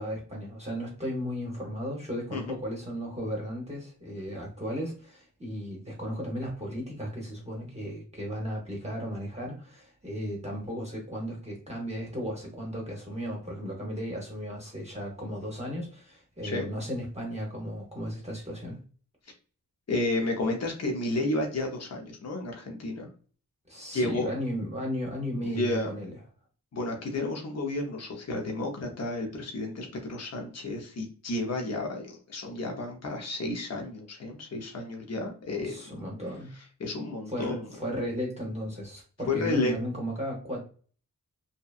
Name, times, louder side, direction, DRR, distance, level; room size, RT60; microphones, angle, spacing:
voice 1, 0.0-18.8 23.7-26.1 35.6-36.5 37.3-40.6, equal, 20° right, -2 dB, 0.7 m, -35 dB
voice 2, 19.9-23.1 23.9-24.3 25.4-25.9 26.7-35.8 36.8-37.7 39.3-39.7, left 2 dB, 45° left, 1 dB, 0.7 m, -31 dB
2.7 x 2.2 x 2.3 m, 0.40 s
wide cardioid pair, 85°, 35 cm